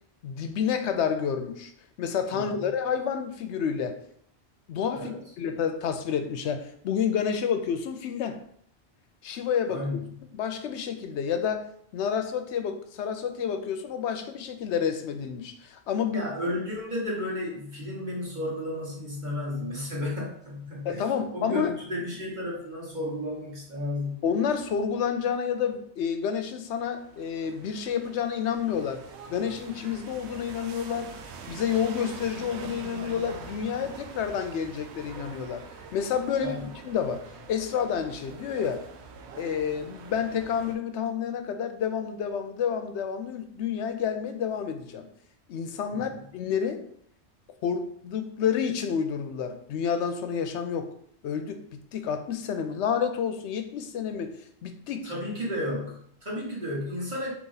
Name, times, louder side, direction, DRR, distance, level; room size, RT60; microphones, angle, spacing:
voice 1, 0.2-1.7 2.0-4.0 4.7-8.4 9.2-10.0 10.3-11.7 11.9-16.2 20.8-21.7 24.2-29.0 29.3-31.1 31.5-35.6 35.9-36.6 36.8-38.9 39.3-45.1 45.5-46.8 47.6-50.9 51.2-51.6 51.9-54.4 54.6-55.1, left 7 dB, 75° left, 7 dB, 0.9 m, -29 dB
voice 2, 2.3-2.7 4.9-5.2 9.7-10.2 16.1-21.0 21.3-24.2 36.4-36.7 45.9-46.2 55.0-57.3, left 1 dB, 40° right, -6 dB, 1.3 m, -33 dB
sound 1, 26.6-40.8, right 5 dB, 75° right, 0.8 m, -45 dB
4.0 x 2.9 x 3.9 m, 0.65 s
omnidirectional pair, 1.2 m